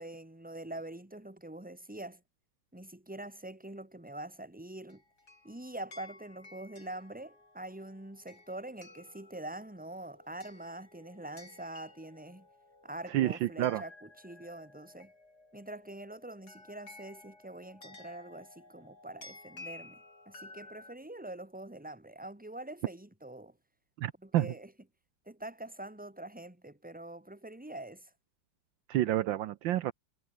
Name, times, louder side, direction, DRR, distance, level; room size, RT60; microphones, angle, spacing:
voice 1, 0.0-2.2 2.7-5.0 5.4-12.5 12.8-15.1 15.5-20.0 20.3-23.6 24.2-24.7 25.3-28.1, right 1 dB, 5° right, 2.6 m, -44 dB
sound 1, 4.9-20.9, left 2 dB, 50° left, 6.8 m, -54 dB
voice 2, 13.1-13.8 24.0-24.5 28.9-29.9, right 13 dB, 75° right, 1.4 m, -29 dB
omnidirectional pair, 2.2 m